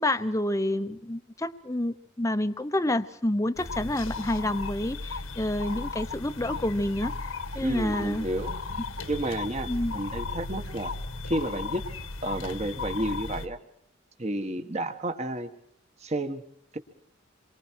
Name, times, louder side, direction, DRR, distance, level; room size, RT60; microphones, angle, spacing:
voice 1, 0.0-7.1 7.5-8.3 9.7-9.9, left 1 dB, 15° left, 9 dB, 0.9 m, -28 dB
sound 1, 3.6-13.5, left 3 dB, 85° left, 1.9 m, -35 dB
voice 2, 7.6-8.5 9.1-10.9 11.2-11.8 12.2-13.6 14.2-15.5 16.0-16.4, right 1 dB, 30° right, 7 dB, 1.6 m, -31 dB
27.5 x 23.5 x 4.7 m, 0.66 s
head